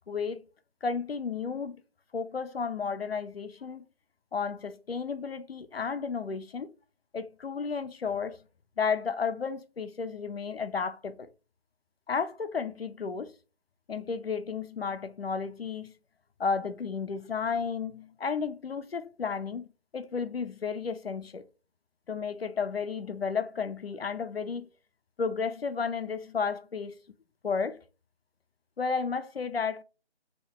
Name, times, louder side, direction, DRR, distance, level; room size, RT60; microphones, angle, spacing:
voice 1, 0.1-0.4 0.8-1.8 2.1-3.8 4.3-6.7 7.1-8.4 8.8-11.3 12.1-13.3 13.9-15.9 16.4-19.7 19.9-21.4 22.1-24.7 25.2-27.0 27.4-27.8 28.8-29.8, left 5 dB, 65° left, 0.5 m, -32 dB
3.1 x 2.8 x 3.0 m
figure-of-eight pair, 175°, 32 cm